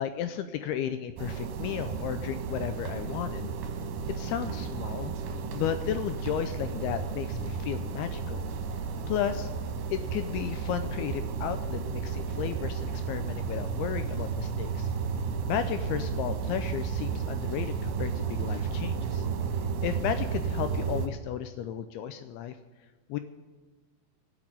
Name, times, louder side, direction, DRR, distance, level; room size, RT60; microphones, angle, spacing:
voice 1, 0.0-3.5 4.1-5.1 5.5-8.5 9.1-9.5 9.9-14.9 15.5-19.3 19.8-22.6 23.1-23.2, left 10 dB, 85° left, 9 dB, 2.2 m, -34 dB
sound 1, 1.2-21.1, right 5 dB, 80° right, 3.3 m, -33 dB
17.5 x 6.1 x 8.9 m, 1.3 s
omnidirectional pair, 5.0 m